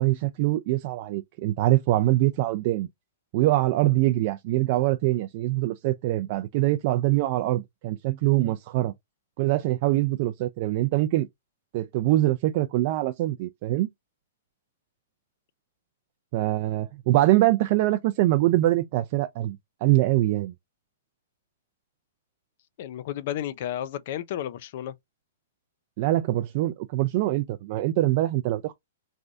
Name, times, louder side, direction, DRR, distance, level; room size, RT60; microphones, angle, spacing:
voice 1, 0.0-2.9 3.3-8.9 9.4-11.3 11.7-13.9 16.3-20.5 26.0-28.7, right 16 dB, 40° right, 0.3 m, -24 dB
voice 2, 22.8-24.9, left 11 dB, 50° left, 0.4 m, -32 dB
3.2 x 2.6 x 2.4 m
hypercardioid pair, 155°, 0 cm